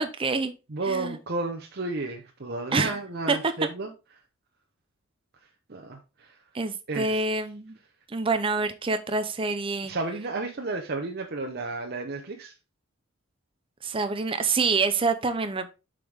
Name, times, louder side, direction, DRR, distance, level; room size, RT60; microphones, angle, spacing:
voice 1, 0.0-0.5 0.8-1.2 2.7-3.0 3.3-3.5 6.5-7.8 8.1-9.9 13.8-15.7, right 3 dB, 25° right, 0.6 m, -26 dB
voice 2, 0.7-3.9 5.7-6.4 6.9-7.3 9.8-12.5, right 3 dB, 50° right, 0.9 m, -32 dB
7.6 x 5.1 x 3.5 m
head